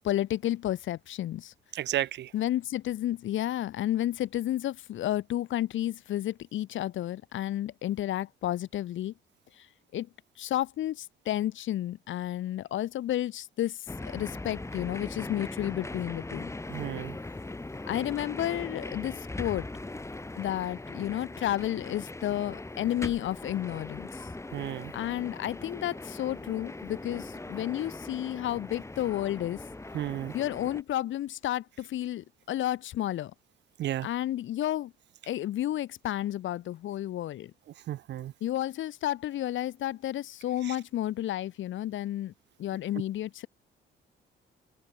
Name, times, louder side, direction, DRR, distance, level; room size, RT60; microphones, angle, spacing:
voice 1, 0.0-1.5 2.3-9.1 9.6-9.7 9.9-10.1 10.4-16.5 17.9-19.7 20.4-24.3 24.9-29.6 30.3-33.3 34.0-34.9 35.3-37.5 38.4-42.3 42.6-43.5, left 13 dB, 75° left, 1.6 m, -31 dB
voice 2, 1.7-2.3 16.7-17.1 24.5-24.9 29.9-30.3 33.8-34.1 37.9-38.3, right 13 dB, 65° right, 0.5 m, -32 dB
sound 1, 13.9-30.8, left 2 dB, 15° left, 2.7 m, -40 dB
open air
cardioid pair, 90°, 20 cm